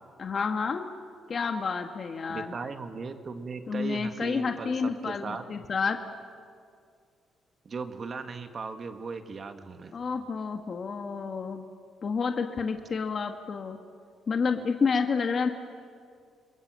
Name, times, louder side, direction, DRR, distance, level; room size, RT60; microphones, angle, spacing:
voice 1, 0.2-0.9 1.3-2.6 3.7-6.0 9.9-11.6 12.0-13.8 14.3-15.5, left 5 dB, 45° left, 5 dB, 1.5 m, -29 dB
voice 2, 2.3-4.8 5.0-5.4 7.7-9.9, right 4 dB, 45° right, 7 dB, 1.9 m, -37 dB
28.0 x 22.0 x 7.7 m, 2.2 s
cardioid pair, 90°, 0 cm